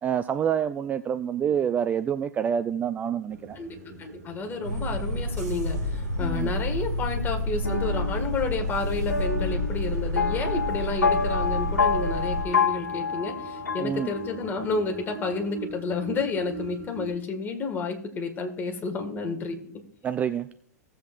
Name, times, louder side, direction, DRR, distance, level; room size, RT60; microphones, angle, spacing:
voice 1, 0.0-3.6 6.2-6.5 13.8-14.1 20.0-20.5, right 8 dB, 15° right, 12 dB, 0.4 m, -27 dB
sound 1, 3.3-17.1, right 3 dB, 50° right, 2.2 m, -43 dB
voice 2, 3.6-19.7, left 4 dB, 20° left, 4 dB, 1.8 m, -31 dB
sound 2, 4.6-12.4, left 1 dB, 85° right, 4.1 m, -29 dB
sound 3, 7.6-14.6, left 5 dB, 80° left, 1.1 m, -28 dB
17.0 x 7.7 x 2.5 m, 0.63 s
figure-of-eight pair, 100°, 9 cm